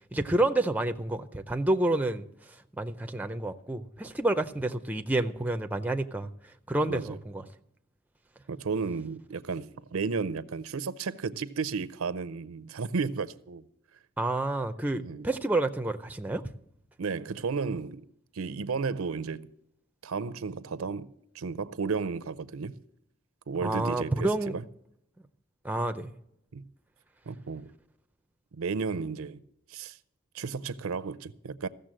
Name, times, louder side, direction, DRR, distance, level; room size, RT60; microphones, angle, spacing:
voice 1, 0.1-2.3 2.8-6.3 6.7-7.4 14.2-16.4 23.6-24.5 25.6-26.1, right 2 dB, 5° right, 0.5 m, -29 dB
voice 2, 6.9-7.2 8.5-13.6 15.0-15.3 17.0-18.0 18.3-19.5 20.0-21.1 21.3-22.7 23.5-24.6 26.5-26.6 27.3-27.7 28.5-29.4 29.7-30.0 30.3-31.7, right 5 dB, 75° right, 0.5 m, -33 dB
15.0 x 6.7 x 7.7 m
head